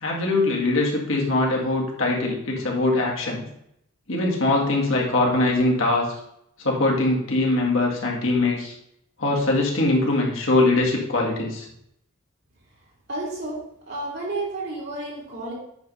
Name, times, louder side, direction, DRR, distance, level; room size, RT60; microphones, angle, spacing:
voice 1, 0.0-3.4 4.1-6.1 6.6-8.7 9.2-11.7, left 2 dB, 70° left, -2 dB, 2.0 m, -22 dB
voice 2, 13.1-13.6 13.9-15.5, right 2 dB, 50° right, -4 dB, 3.2 m, -31 dB
9.2 x 3.5 x 5.5 m, 0.75 s
head